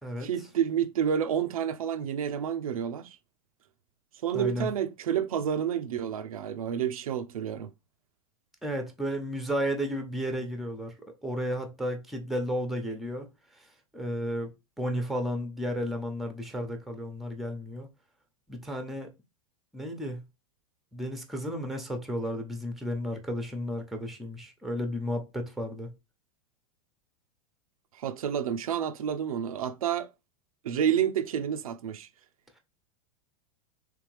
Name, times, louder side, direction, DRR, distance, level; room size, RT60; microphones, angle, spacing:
voice 1, 0.2-3.2 4.2-7.7 27.9-30.1 30.6-32.1, right 9 dB, 85° right, 0.5 m, -29 dB
voice 2, 4.3-4.7 8.6-10.9 11.2-13.3 13.6-13.7 13.9-17.9 18.5-19.1 19.7-20.2 20.9-25.9, equal, ahead, 0.9 m, -33 dB
3.4 x 3.3 x 3.2 m
hypercardioid pair, 110°, 18 cm